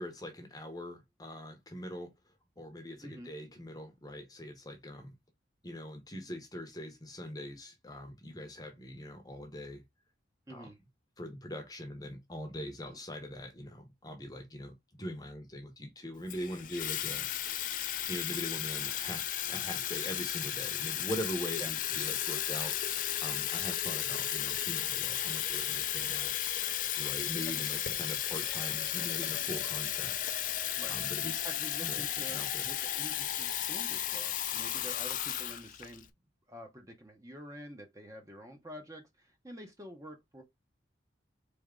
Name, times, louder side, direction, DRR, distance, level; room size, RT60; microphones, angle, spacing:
voice 1, 0.0-2.1 2.6-5.1 5.6-9.8 10.5-10.7 11.2-17.6 18.1-26.3 27.0-30.2 30.9-31.4 31.8-32.7, equal, 20° left, 0.9 m, -42 dB
voice 2, 3.0-3.3 10.5-10.8 12.9-13.0 21.6-21.7 27.4-27.7 30.8-31.0 31.4-36.1 36.5-40.4, equal, 20° right, 0.8 m, -48 dB
Water tap faucet / Fill (with liquid), 16.3-36.0, left 11 dB, 45° left, 0.4 m, -34 dB
4.1 x 3.4 x 3.7 m
head